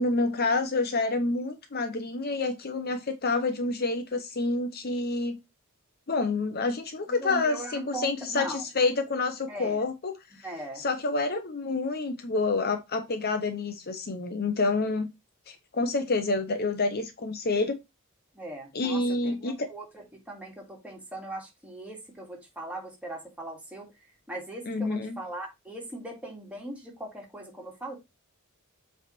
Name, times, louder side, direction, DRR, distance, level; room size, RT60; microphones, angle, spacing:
voice 1, 0.0-5.4 6.1-10.1 10.8-15.1 15.5-17.8 18.7-19.7 24.7-25.2, left 3 dB, 45° left, 0.8 m, -28 dB
voice 2, 7.1-8.6 9.5-9.8 10.4-10.9 18.3-23.9 24.3-28.0, right 1 dB, 5° right, 2.3 m, -40 dB
7.8 x 3.4 x 4.3 m
head